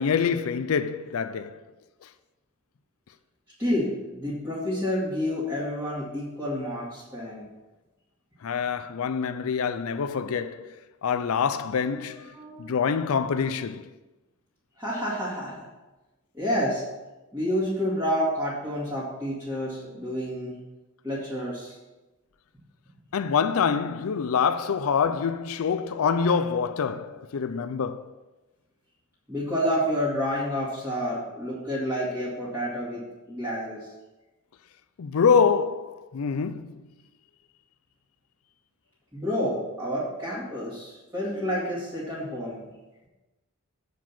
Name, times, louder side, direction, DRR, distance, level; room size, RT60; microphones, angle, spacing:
voice 1, 0.0-1.5 8.4-10.8 11.0-12.3 12.6-13.9 23.1-28.1 35.0-36.8, left 6 dB, 75° left, 0.4 m, -25 dB
voice 2, 3.6-7.5 11.9-12.7 14.8-15.7 16.3-16.8 17.3-20.6 21.0-21.8 29.3-33.9 39.1-42.6, equal, 10° right, 2.1 m, -29 dB
7.7 x 4.9 x 7.1 m
head